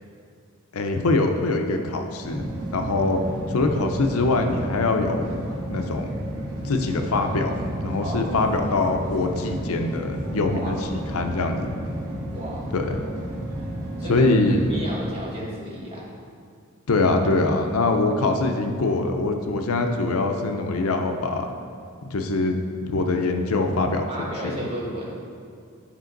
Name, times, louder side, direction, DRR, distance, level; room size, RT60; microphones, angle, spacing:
voice 1, 0.7-2.5 2.7-3.2 3.5-5.3 5.7-6.1 6.6-11.8 12.7-13.0 14.1-14.6 16.9-21.5 22.0-24.1 24.4-24.6, left 2 dB, 70° left, 5 dB, 0.6 m, -23 dB
sound 1, 2.2-15.0, right 1 dB, 85° right, 1.9 m, -32 dB
voice 2, 8.0-8.5 10.5-10.8 12.3-12.7 14.0-16.1 17.4-17.9 24.1-25.2, equal, 25° right, -5 dB, 1.6 m, -34 dB
10.5 x 5.2 x 3.9 m, 2.3 s
head